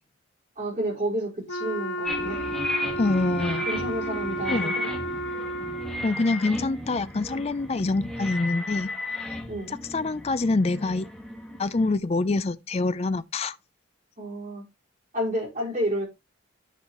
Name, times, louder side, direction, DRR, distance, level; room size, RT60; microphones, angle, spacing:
voice 1, 0.6-2.4 3.6-4.9 6.6-6.7 9.5-9.7 14.2-14.6 15.1-16.1, equal, 40° right, 4.8 m, -30 dB
Wind instrument woodwind instrument, 1.5-6.1, right 1 dB, 85° left, 1.2 m, -32 dB
sound 1, 2.0-11.9, left 1 dB, 5° left, 1.6 m, -34 dB
voice 2, 3.0-3.7 4.5-4.8 6.0-9.4 9.7-11.1 11.5-13.6, left 3 dB, 30° left, 0.4 m, -26 dB
10.5 x 5.6 x 3.0 m
head